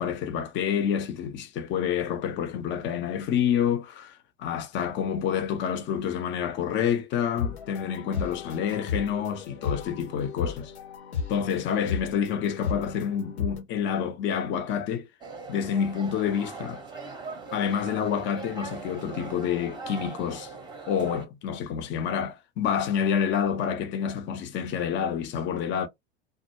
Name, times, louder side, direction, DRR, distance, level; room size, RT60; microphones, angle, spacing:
voice 1, 0.0-10.7 11.3-15.1 15.5-16.8 17.5-20.5 20.9-25.9, left 8 dB, 35° left, 0.6 m, -28 dB
sound 1, 7.3-13.6, left 6 dB, 85° left, 0.9 m, -34 dB
sound 2, 15.2-21.3, right 4 dB, 15° right, 0.7 m, -40 dB
2.2 x 2.0 x 2.8 m
hypercardioid pair, 90°, 32 cm